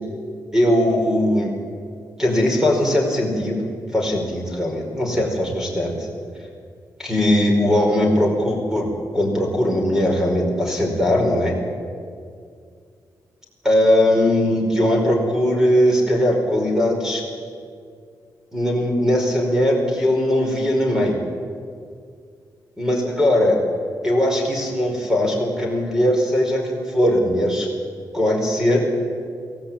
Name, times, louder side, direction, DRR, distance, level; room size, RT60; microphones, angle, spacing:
voice 1, 0.5-1.5 2.2-3.6 3.9-6.1 7.0-11.6 13.6-17.2 18.5-21.1 22.8-23.6 24.0-27.7 28.1-28.9, left 1 dB, 5° right, 1 dB, 4.9 m, -19 dB
23.5 x 16.5 x 8.9 m, 2.2 s
wide cardioid pair, 150°, 8 cm